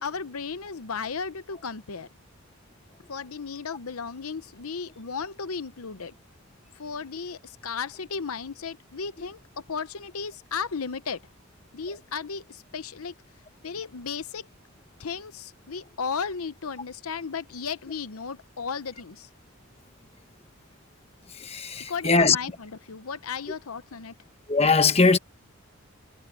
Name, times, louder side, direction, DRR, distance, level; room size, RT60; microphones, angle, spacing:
voice 1, 0.0-2.1 3.1-6.1 6.7-11.2 11.7-13.1 13.6-14.5 15.0-19.3 21.9-24.1, left 5 dB, 90° left, 0.8 m, -35 dB
voice 2, 21.3-22.4 24.5-25.2, left 4 dB, 30° left, 1.1 m, -21 dB
head